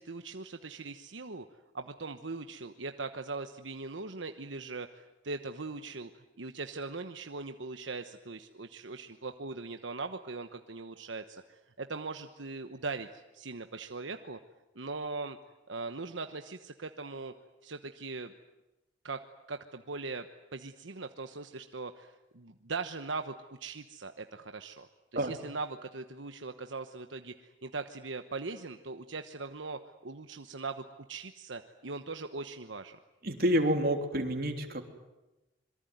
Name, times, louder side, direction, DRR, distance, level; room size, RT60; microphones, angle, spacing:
voice 1, 0.0-14.4 14.7-15.4 15.7-17.3 17.6-18.3 19.0-19.2 19.5-23.3 23.6-33.0, right 3 dB, 80° right, 7 dB, 1.1 m, -40 dB
voice 2, 33.2-34.9, equal, 55° right, 4 dB, 3.3 m, -28 dB
26.5 x 23.0 x 9.4 m, 1.0 s
head